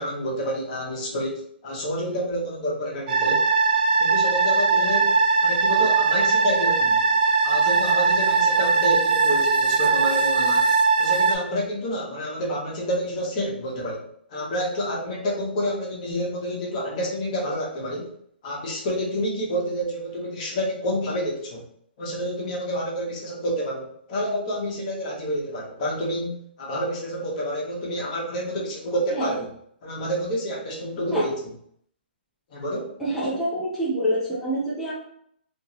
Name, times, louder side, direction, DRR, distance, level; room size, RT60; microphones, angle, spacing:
voice 1, 0.0-3.4 4.0-7.0 7.4-10.7 11.0-14.0 14.3-18.1 18.4-21.6 22.0-29.5 29.8-31.5 32.5-32.9, equal, 40° left, -2 dB, 1.0 m, -28 dB
sound 1, 3.1-11.3, right 4 dB, 50° right, 0.8 m, -20 dB
voice 2, 33.0-34.9, equal, ahead, -9 dB, 0.7 m, -26 dB
2.6 x 2.6 x 3.0 m, 0.66 s
hypercardioid pair, 150°, 6 cm